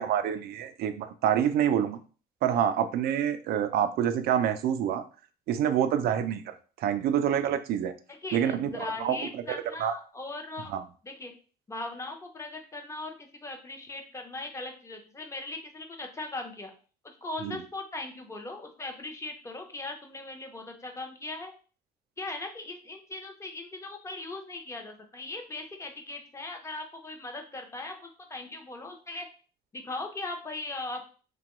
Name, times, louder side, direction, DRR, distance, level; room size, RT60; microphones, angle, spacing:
voice 1, 0.0-2.0 2.4-5.0 5.5-7.9 8.3-9.2 9.5-10.0 10.7-10.8 17.4-17.6, right 9 dB, 65° right, 10 dB, 0.4 m, -27 dB
voice 2, 8.1-10.7 11.0-11.3 11.7-16.7 17.0-21.5 22.2-29.3 29.7-31.0, left 2 dB, 15° left, 4 dB, 0.6 m, -39 dB
2.9 x 2.2 x 2.9 m, 0.38 s
cardioid pair, 110°, 17 cm